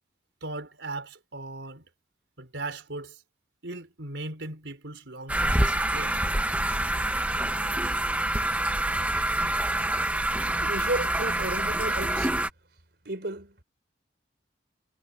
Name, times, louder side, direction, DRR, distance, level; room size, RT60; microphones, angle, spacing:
voice 1, 0.4-1.9 2.4-3.2 3.6-6.2, right 2 dB, 85° right, 4.5 m, -38 dB
sound 1, 5.3-12.5, right 1 dB, 10° right, 1.0 m, -26 dB
voice 2, 10.5-12.4 13.0-13.6, right 1 dB, 65° right, 3.9 m, -33 dB
head